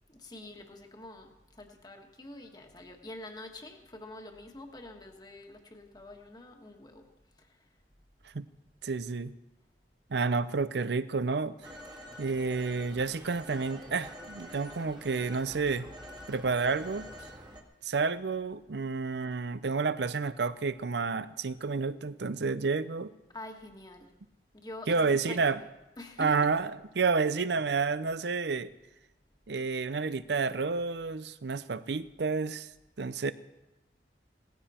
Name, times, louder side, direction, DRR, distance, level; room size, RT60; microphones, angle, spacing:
voice 1, 0.1-7.1 23.3-24.1 24.5-25.6 26.0-26.5, left 1 dB, 25° left, 3 dB, 1.5 m, -46 dB
voice 2, 8.8-9.3 10.1-11.6 12.2-15.9 16.3-17.1 17.8-23.1 24.9-25.6 26.2-28.7 29.5-32.7 33.0-33.3, right 4 dB, 70° right, 15 dB, 0.6 m, -30 dB
Telephone, 11.6-17.6, equal, 25° right, 1.7 m, -47 dB
18.0 x 15.0 x 4.4 m, 0.99 s
head